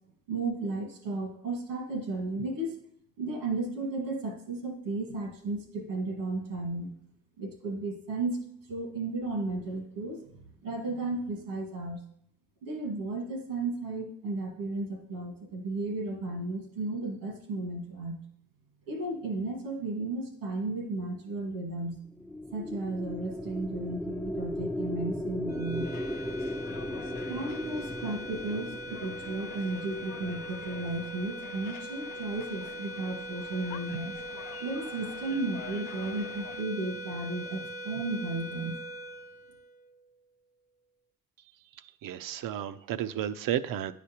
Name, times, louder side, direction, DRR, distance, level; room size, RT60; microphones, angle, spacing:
voice 1, 0.3-2.7 3.2-6.9 7.4-8.4 8.7-12.0 12.6-18.2 18.9-22.0 22.5-25.9 27.3-34.1 34.6-38.8, right 2 dB, 90° right, 2 dB, 1.6 m, -34 dB
sound 1, 22.0-30.6, left 1 dB, 5° left, 0.4 m, -37 dB
sound 2, 25.5-40.0, equal, 30° left, 0.8 m, -41 dB
sound 3, 25.8-36.6, left 10 dB, 65° left, 0.5 m, -48 dB
voice 2, 42.0-43.9, right 11 dB, 70° right, 12 dB, 0.5 m, -32 dB
9.5 x 5.0 x 2.9 m, 0.70 s
supercardioid pair, 60°, 35 cm